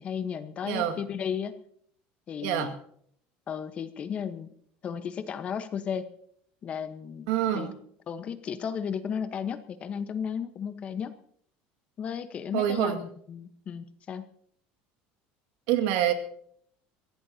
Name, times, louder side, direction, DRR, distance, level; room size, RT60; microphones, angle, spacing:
voice 1, 0.0-1.6 2.3-2.7 3.5-4.5 4.8-6.1 6.6-7.3 7.5-7.7 8.1-11.1 12.0-14.3, left 7 dB, 30° left, 10 dB, 1.1 m, -34 dB
voice 2, 0.6-1.0 2.4-2.7 7.3-7.8 12.5-13.0 15.7-16.1, right 11 dB, 75° right, 6 dB, 2.1 m, -26 dB
23.5 x 16.5 x 2.8 m, 0.65 s
cardioid pair, 150°, 4 cm